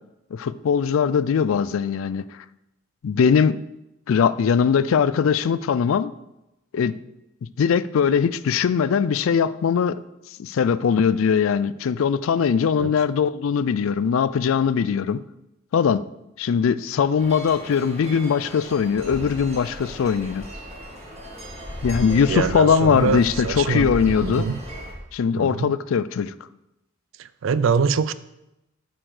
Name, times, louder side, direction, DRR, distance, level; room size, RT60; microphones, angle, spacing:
voice 1, 0.3-2.2 3.0-3.6 4.1-6.1 6.7-6.9 7.6-10.0 10.4-15.2 15.7-16.0 16.4-20.5 21.8-24.5 25.1-26.3, left 6 dB, 70° left, 0.4 m, -21 dB
sound 1, 17.2-24.9, equal, 30° right, 1.7 m, -35 dB
voice 2, 22.2-23.9 24.2-24.6 25.4-25.7 27.2-28.1, right 5 dB, 65° right, 0.4 m, -24 dB
7.8 x 6.2 x 4.8 m
head